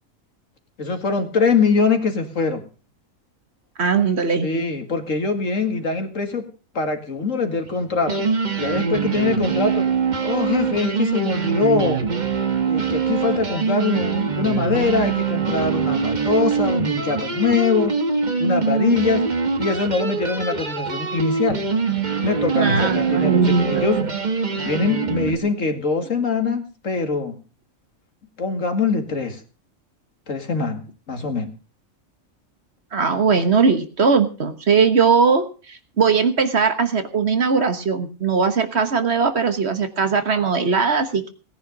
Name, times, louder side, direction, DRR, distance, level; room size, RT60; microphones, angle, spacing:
voice 1, 0.8-2.6 4.4-6.4 6.7-8.3 8.6-9.9 10.2-12.0 12.7-17.9 18.4-19.2 19.6-21.6 22.2-24.0 24.6-27.4 28.4-29.4 30.3-31.5, left 4 dB, 70° left, 6 dB, 2.4 m, -23 dB
voice 2, 3.8-4.5 22.5-24.1 32.9-41.3, right 5 dB, 50° right, 9 dB, 1.6 m, -19 dB
sound 1, 7.7-7.8 8.0-25.4, right 5 dB, 35° right, 1.3 m, -23 dB
17.5 x 10.0 x 5.3 m, 0.37 s
omnidirectional pair, 1.4 m